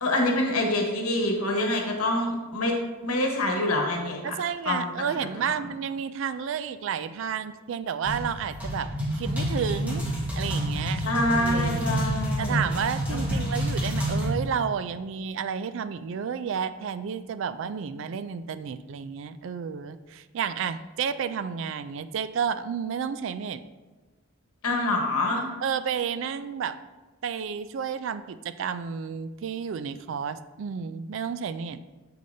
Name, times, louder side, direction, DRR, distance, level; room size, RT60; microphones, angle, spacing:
voice 1, 0.0-2.7 3.0-4.4 4.6-5.5 11.0-12.6 24.6-25.5, left 1 dB, 90° left, 1 dB, 1.2 m, -26 dB
voice 2, 4.2-10.1 10.4-11.0 11.3-12.0 12.4-23.6 25.6-26.8 27.2-31.8, right 7 dB, 60° right, 13 dB, 0.3 m, -31 dB
sound 1, 8.0-14.3, equal, 5° right, 1.4 m, -28 dB
6.9 x 6.4 x 2.7 m, 1.2 s
head